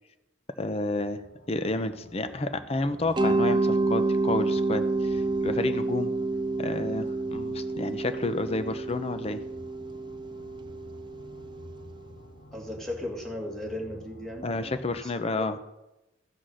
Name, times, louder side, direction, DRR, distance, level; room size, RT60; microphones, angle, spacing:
voice 1, 0.6-1.2 1.5-6.1 6.6-9.4 14.4-15.6, left 2 dB, 30° left, 10 dB, 0.7 m, -30 dB
sound 1, 0.7-15.0, left 1 dB, 55° left, 1.2 m, -50 dB
Mallet percussion, 3.2-11.9, right 2 dB, 25° right, 0.5 m, -28 dB
voice 2, 12.5-15.1 15.4-15.5, left 1 dB, ahead, 0 dB, 2.0 m, -36 dB
15.5 x 6.2 x 6.3 m, 0.98 s
head